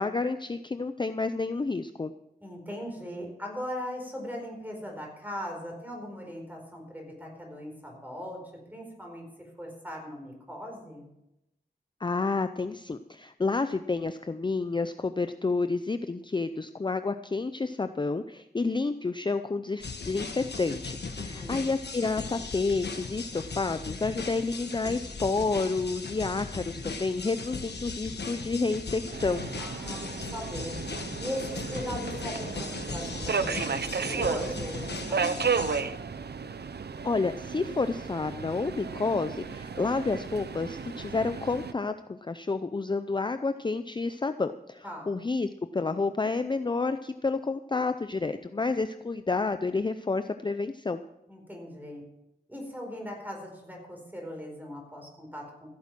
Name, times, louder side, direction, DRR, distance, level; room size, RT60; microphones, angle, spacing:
voice 1, 0.0-2.1 12.0-29.4 37.0-51.0, left 3 dB, 30° left, 10 dB, 0.5 m, -30 dB
voice 2, 2.4-8.4 8.7-9.2 9.6-11.1 21.2-21.7 29.6-30.8 31.2-35.6 44.8-45.1 51.3-52.0 52.5-55.7, equal, 10° right, 1 dB, 4.6 m, -39 dB
sound 1, 19.8-35.8, left 4 dB, 90° left, 1.3 m, -38 dB
Subway metro underground, 29.1-41.7, right 5 dB, 80° right, 0.7 m, -34 dB
15.0 x 8.7 x 6.1 m, 0.87 s
wide cardioid pair, 85°, 17 cm